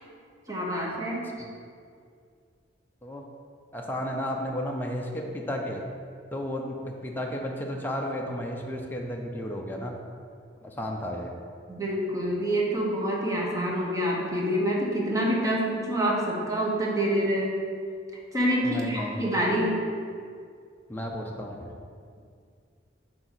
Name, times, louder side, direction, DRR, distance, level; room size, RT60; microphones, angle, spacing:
voice 1, 0.5-1.4 11.7-17.6 18.3-19.8, equal, 20° right, -3 dB, 1.0 m, -26 dB
voice 2, 3.7-5.8 6.3-10.0 10.6-11.3 18.6-19.3 20.9-21.7, equal, 10° left, 0 dB, 0.5 m, -33 dB
7.7 x 2.7 x 6.0 m, 2.2 s
head